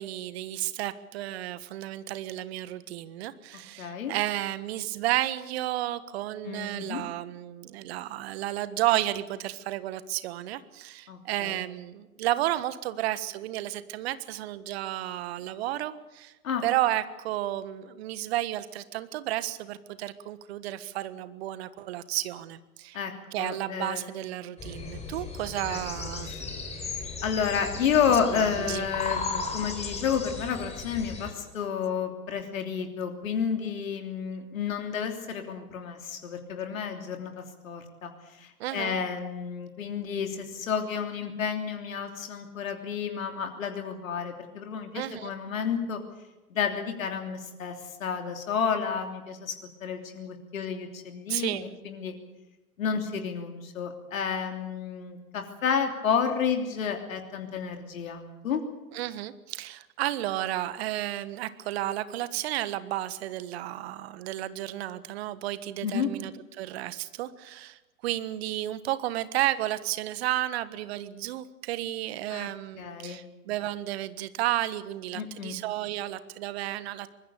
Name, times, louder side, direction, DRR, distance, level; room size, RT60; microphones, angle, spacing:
voice 1, 0.0-16.3 16.6-23.0 23.3-26.3 28.1-28.9 38.6-39.0 44.9-45.3 51.3-51.7 58.9-66.3 66.6-77.1, right 14 dB, 45° right, 15 dB, 1.4 m, -32 dB
voice 2, 3.8-4.1 6.4-7.0 11.1-11.6 16.4-16.6 22.9-23.1 23.4-24.2 25.7-25.8 26.2-26.4 27.2-38.1 38.4-46.0 46.5-47.7 48.0-49.5 49.8-52.1 52.8-58.6 65.8-66.1 72.3-72.5 72.8-73.2 75.1-75.6, left 7 dB, 60° left, 4 dB, 3.2 m, -31 dB
sound 1, 24.6-31.3, left 4 dB, 15° left, 4.8 m, -36 dB
24.5 x 21.0 x 7.0 m, 1.1 s
figure-of-eight pair, 105°, 44 cm